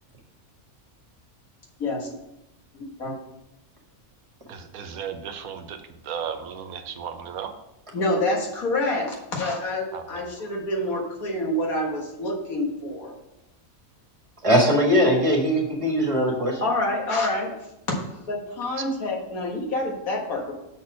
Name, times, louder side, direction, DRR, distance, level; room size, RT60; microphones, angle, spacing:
voice 1, 2.7-3.1 7.9-13.1 16.6-17.5 17.9-18.0 18.3-20.5, left 1 dB, 85° left, 0 dB, 2.0 m, -27 dB
voice 2, 4.5-7.5 9.9-10.3, right 7 dB, 90° right, 8 dB, 1.2 m, -35 dB
voice 3, 14.4-16.6, equal, 25° right, 0 dB, 1.6 m, -20 dB
7.0 x 4.3 x 6.2 m, 0.89 s
omnidirectional pair, 1.5 m